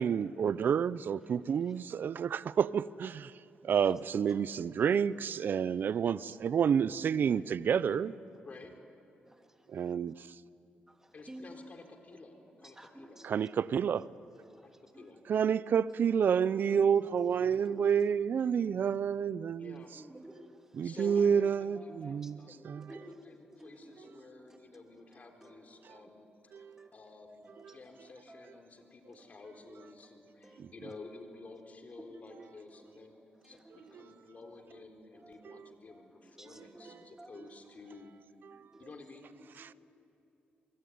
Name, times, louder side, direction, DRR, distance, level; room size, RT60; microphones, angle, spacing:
voice 1, 0.0-3.3 3.6-8.1 9.7-10.4 13.2-14.1 15.3-19.8 20.7-23.0 26.5-26.9 27.6-27.7 30.6-30.7 35.5-35.6 38.5-38.7 39.6-39.7, right 7 dB, 60° right, 0.7 m, -29 dB
voice 2, 11.1-13.2 14.6-15.2 19.6-19.9 20.8-22.6 22.9-26.3 26.6-33.2 33.4-38.1 38.8-39.3, left 3 dB, 45° left, 4.0 m, -52 dB
voice 3, 12.8-13.3 14.5-15.0 17.4-17.5 19.9-20.6 21.0-21.1 21.8-22.2 22.4-23.3 23.6-24.6 25.4-26.1 26.6-26.9 27.4-27.6 28.3-28.6 30.0-30.6 32.0-32.1 32.7-32.9 33.6-34.0 35.1-35.5 36.2-37.3 38.7-38.9 39.4-39.7, right 1 dB, 15° right, 3.0 m, -53 dB
25.5 x 23.5 x 9.5 m
cardioid pair, 75°, 4 cm